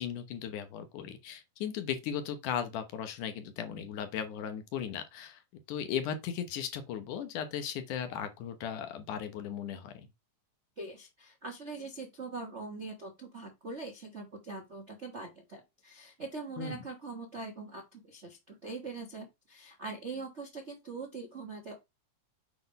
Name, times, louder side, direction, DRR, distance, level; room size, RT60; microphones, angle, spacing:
voice 1, 0.0-5.4 5.7-10.1 16.6-16.8, left 8 dB, 70° left, 2.4 m, -37 dB
voice 2, 10.8-21.8, right 3 dB, 55° right, 0.7 m, -42 dB
8.3 x 3.6 x 5.3 m
omnidirectional pair, 3.8 m